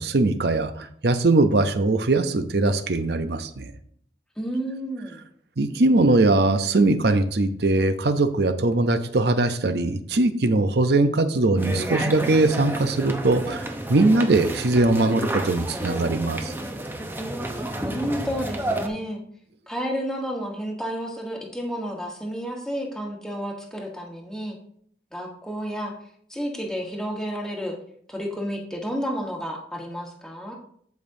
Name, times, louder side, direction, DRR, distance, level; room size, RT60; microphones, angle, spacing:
voice 1, 0.0-3.7 5.6-16.5, right 2 dB, 65° right, 10 dB, 0.7 m, -21 dB
voice 2, 4.4-5.2 17.8-19.2 19.7-24.6 25.1-25.9 26.3-27.8 28.1-30.6, equal, 5° left, -1 dB, 1.3 m, -31 dB
sound 1, 11.6-18.9, right 1 dB, 10° right, 0.7 m, -31 dB
14.5 x 5.2 x 2.7 m, 0.64 s
head